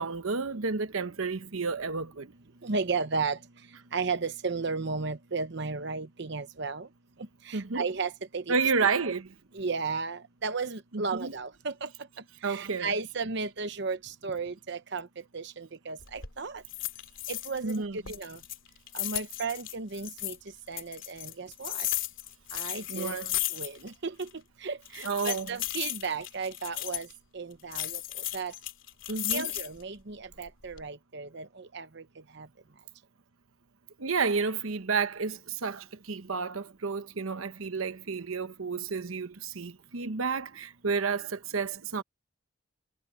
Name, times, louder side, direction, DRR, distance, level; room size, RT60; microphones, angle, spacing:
voice 1, 0.0-2.3 7.5-7.9 8.5-9.3 10.9-11.3 12.4-12.9 17.6-18.0 22.9-23.4 25.0-25.6 29.1-29.5 34.0-42.0, right 5 dB, 85° right, 1.0 m, -31 dB
voice 2, 2.6-3.4 3.9-6.9 7.5-8.5 9.0-9.1 9.5-11.9 12.4-15.1 15.3-16.6 17.3-18.4 18.9-20.4 20.7-21.9 22.5-23.2 23.5-24.3 24.6-27.1 27.3-28.0 28.3-28.5 29.3-32.0 32.4-32.5, right 4 dB, 55° right, 0.9 m, -34 dB
sound 1, 16.0-16.3 16.7-17.8 18.0-20.4 20.8-23.9 24.2-24.3 24.8-27.1 27.7-29.8 30.3-30.8, left 15 dB, 65° left, 3.1 m, -35 dB
head